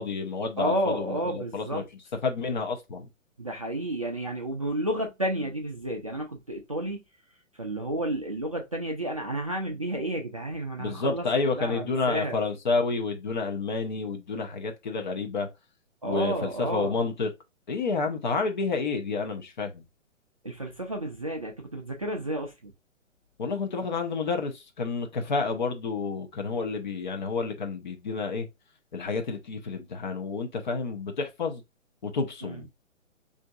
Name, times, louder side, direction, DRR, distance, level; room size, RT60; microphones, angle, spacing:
voice 1, 0.0-1.8 2.2-3.1 10.8-15.5 16.0-17.3 17.7-19.8 23.4-28.5 28.9-31.6 32.0-32.7, left 4 dB, 35° left, 0.7 m, -30 dB
voice 2, 0.6-1.8 3.4-7.0 7.6-12.4 16.0-17.0 20.4-22.7 32.4-32.6, right 1 dB, 30° right, 0.4 m, -31 dB
4.3 x 2.6 x 2.3 m
figure-of-eight pair, 125°, 39 cm